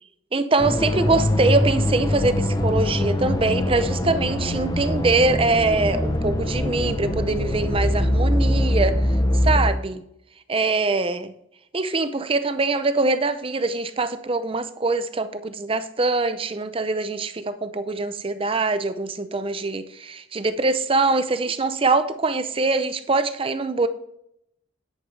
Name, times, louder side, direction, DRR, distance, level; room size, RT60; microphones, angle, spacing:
voice 1, 0.3-9.0 9.4-10.0 10.5-11.3 11.7-23.9, right 3 dB, 25° right, 11 dB, 0.6 m, -23 dB
sound 1, 0.6-9.7, left 1 dB, 20° left, 0.8 m, -23 dB
10.0 x 9.0 x 3.3 m, 0.76 s
head